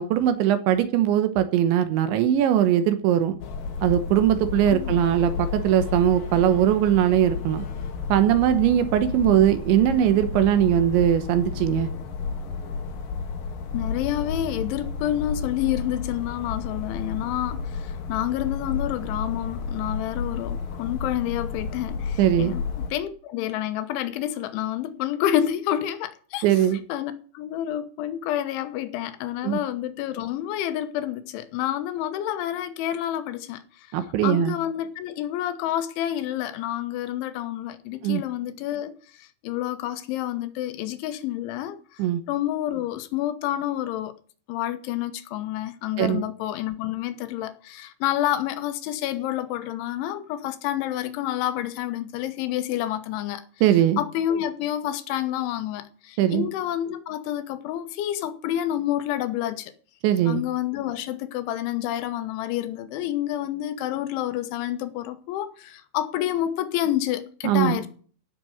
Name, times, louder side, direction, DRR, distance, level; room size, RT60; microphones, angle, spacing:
voice 1, 0.0-3.4 3.8-7.7 8.1-11.9 22.2-22.5 26.4-26.8 29.4-29.6 33.9-34.6 38.0-38.2 42.0-42.2 46.0-46.2 53.6-54.0 56.2-56.5 60.0-60.4 67.4-67.8, right 11 dB, 80° right, 3.4 m, -20 dB
sound 1, 3.4-22.9, left 5 dB, 60° left, 2.9 m, -32 dB
voice 2, 13.7-33.9 34.2-38.9 39.2-42.0 42.3-44.1 44.5-53.4 54.0-59.7 60.3-67.9, left 12 dB, 85° left, 3.5 m, -29 dB
15.5 x 6.2 x 7.7 m
omnidirectional pair, 5.3 m